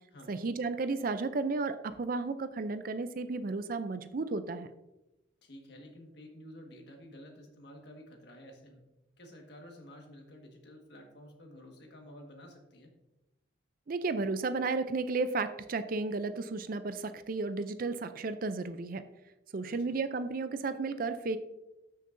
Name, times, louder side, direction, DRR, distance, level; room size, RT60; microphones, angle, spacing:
voice 1, 0.3-4.7 13.9-19.0 19.5-21.4, right 3 dB, 45° right, 11 dB, 0.4 m, -33 dB
voice 2, 5.4-8.8 9.2-12.9 19.6-20.0, equal, 55° left, 2 dB, 1.6 m, -51 dB
13.0 x 6.5 x 2.6 m, 0.97 s
head